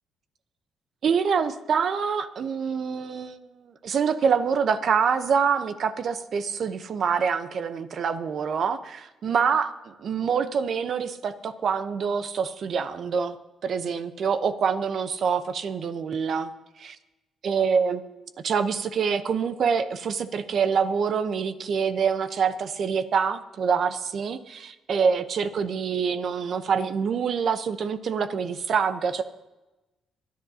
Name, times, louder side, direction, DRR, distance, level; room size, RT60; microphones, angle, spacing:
voice 1, 1.0-9.7 10.0-13.4 13.6-16.5 16.8-17.0 17.4-29.2, right 6 dB, 60° right, 11 dB, 0.9 m, -26 dB
25.0 x 10.5 x 2.9 m, 1.0 s
cardioid pair, 90°, 0 cm